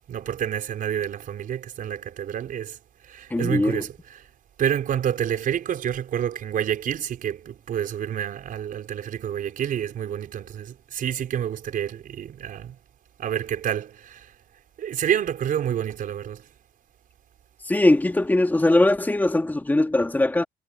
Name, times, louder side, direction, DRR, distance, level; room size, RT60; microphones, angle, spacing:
voice 1, 0.1-4.3 4.6-12.8 13.2-14.3 14.8-16.5, right 9 dB, 55° right, 5.1 m, -28 dB
voice 2, 3.3-3.8 17.7-20.4, left 2 dB, 10° left, 2.1 m, -20 dB
cardioid pair, 110°, 17 cm